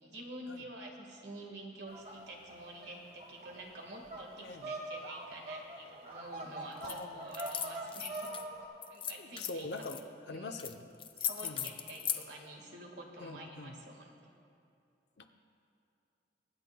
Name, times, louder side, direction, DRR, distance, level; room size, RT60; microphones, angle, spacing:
voice 1, 0.0-8.3 8.9-9.7 10.3-10.6 11.2-14.3, right 1 dB, 70° right, 1 dB, 1.6 m, -48 dB
sound 1, 1.9-8.7, right 2 dB, 35° right, 1.4 m, -44 dB
voice 2, 4.4-4.7 6.8-7.3 9.2-10.0 10.3-10.9 11.4-11.7 13.2-13.8 15.2-15.3, left 2 dB, 65° left, 6 dB, 0.7 m, -43 dB
sound 2, 6.8-7.0 7.3-8.4 8.8-10.0 10.6-10.7 11.0-12.2, left 9 dB, 30° left, 0.4 m, -38 dB
24.0 x 10.5 x 2.3 m, 2.6 s
head